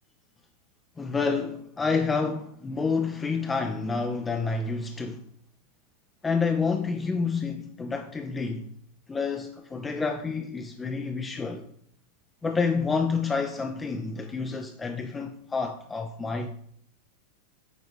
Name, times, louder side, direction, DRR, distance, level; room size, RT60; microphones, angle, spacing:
voice 1, 1.0-5.2 6.2-8.7 9.1-11.7 12.4-16.5, left 4 dB, 15° left, 0.4 m, -29 dB
8.1 x 3.9 x 3.1 m
figure-of-eight pair, 90°, 0 cm